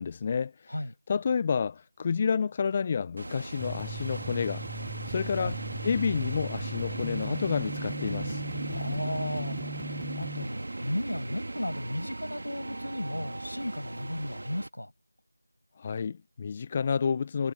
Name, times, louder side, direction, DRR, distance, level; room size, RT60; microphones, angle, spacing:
voice 1, 0.0-0.7 1.1-4.6 5.1-8.4 15.8-17.5, left 6 dB, 20° left, 1.1 m, -29 dB
sound 1, 3.2-14.7, right 2 dB, 50° right, 2.1 m, -37 dB
sound 2, 3.6-10.4, right 1 dB, ahead, 0.8 m, -41 dB
voice 2, 8.7-9.9 10.2-14.9, left 1 dB, 75° left, 7.6 m, -35 dB
figure-of-eight pair, 170°, 0 cm